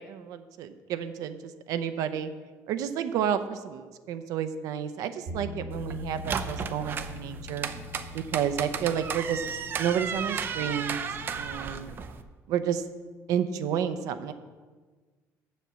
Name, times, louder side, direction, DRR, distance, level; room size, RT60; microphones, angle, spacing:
voice 1, 0.0-1.4 1.7-2.3 2.7-7.7 8.1-9.4 9.8-11.0 11.3-11.9 12.5-12.8 13.3-14.3, right 8 dB, 70° right, 10 dB, 0.7 m, -30 dB
Bass guitar, 5.3-11.5, left 2 dB, 90° right, 3.0 m, -43 dB
sound 1, 5.7-12.2, right 6 dB, 35° right, 0.5 m, -34 dB
7.5 x 7.3 x 6.9 m, 1.4 s
cardioid pair, 160°, 6 cm